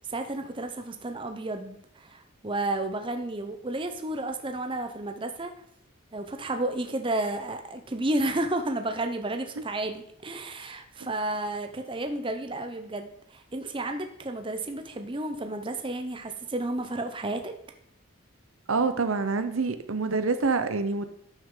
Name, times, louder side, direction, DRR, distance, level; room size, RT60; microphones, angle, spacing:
voice 1, 0.1-5.5 6.1-17.5, right 2 dB, 25° right, 6 dB, 0.7 m, -32 dB
voice 2, 18.7-21.1, right 4 dB, 75° right, 10 dB, 0.8 m, -26 dB
12.0 x 6.4 x 3.8 m, 0.69 s
head